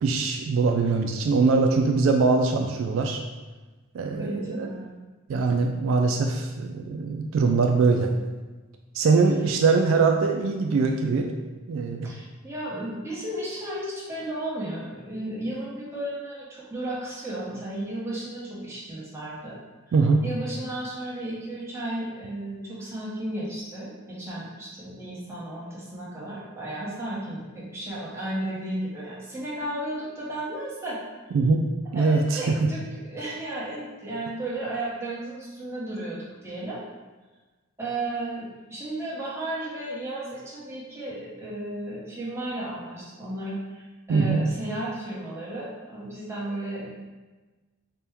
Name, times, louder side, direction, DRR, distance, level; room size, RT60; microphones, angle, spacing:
voice 1, 0.0-3.2 3.9-4.7 5.3-8.1 8.9-11.3 11.7-12.1 19.9-20.2 31.3-31.6 31.9-32.7 44.1-44.4, right 4 dB, 70° right, 3 dB, 0.3 m, -22 dB
voice 2, 4.1-4.9 12.0-19.6 20.2-31.0 31.9-36.8 37.8-46.9, right 1 dB, 15° right, -7 dB, 1.0 m, -34 dB
4.2 x 2.2 x 3.4 m, 1.2 s
head